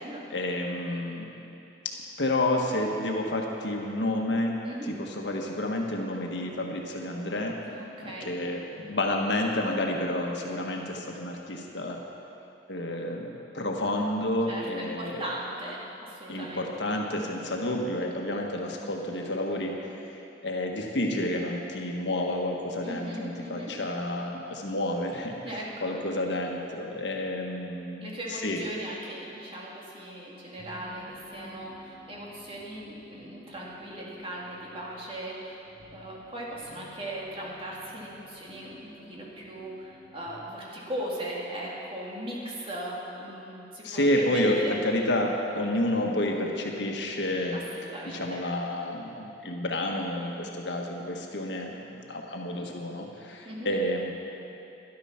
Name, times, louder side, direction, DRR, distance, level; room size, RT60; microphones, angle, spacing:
voice 1, 0.3-1.4 2.2-4.6 4.9-7.6 8.0-12.0 12.7-15.2 16.3-28.6 43.8-47.6 48.0-54.1, left 1 dB, 85° left, 1 dB, 1.5 m, -30 dB
voice 2, 7.7-8.3 14.5-16.6 22.8-23.7 25.4-26.0 28.0-35.6 35.9-44.8 47.5-48.4 53.4-53.7, right 1 dB, 35° right, -4 dB, 2.4 m, -38 dB
sound 1, 30.6-40.3, left 1 dB, 50° right, 1.7 m, -53 dB
12.0 x 12.0 x 5.8 m, 2.9 s
head